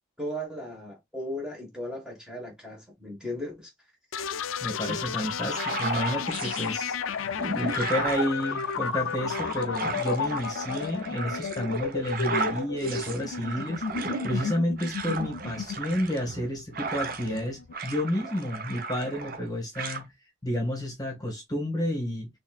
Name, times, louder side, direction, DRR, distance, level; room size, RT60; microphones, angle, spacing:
voice 1, 0.2-3.7 4.9-5.0 7.7-7.8, equal, 5° right, 1.3 m, -36 dB
sound 1, 4.1-17.7, left 6 dB, 90° left, 0.4 m, -32 dB
voice 2, 4.6-7.0 7.5-13.8 14.2-20.1 20.4-22.3, left 1 dB, 20° left, 1.5 m, -30 dB
sound 2, 5.4-6.7 7.2-17.4 17.7-19.5 19.8-20.0, right 3 dB, 45° right, 0.8 m, -35 dB
4.2 x 3.4 x 2.4 m
head